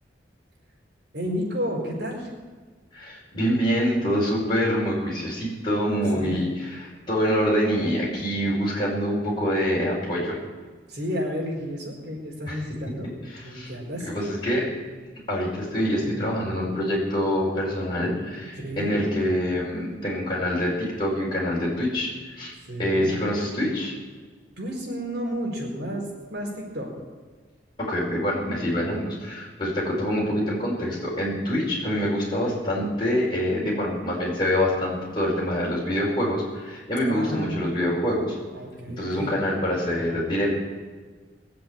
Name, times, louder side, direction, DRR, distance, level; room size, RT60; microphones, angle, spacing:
voice 1, 1.1-2.3 6.1-6.4 10.9-13.1 13.4-14.1 16.0-16.2 18.6-18.9 22.6-23.1 24.6-26.9 37.1-37.8 38.5-39.3, equal, 65° right, -2 dB, 4.5 m, -31 dB
voice 2, 2.9-10.4 12.5-12.6 13.3-13.7 14.1-14.7 15.3-22.5 22.8-23.9 27.8-38.4 38.9-40.5, equal, 25° left, -6 dB, 4.9 m, -25 dB
21.0 x 7.7 x 8.7 m, 1.4 s
head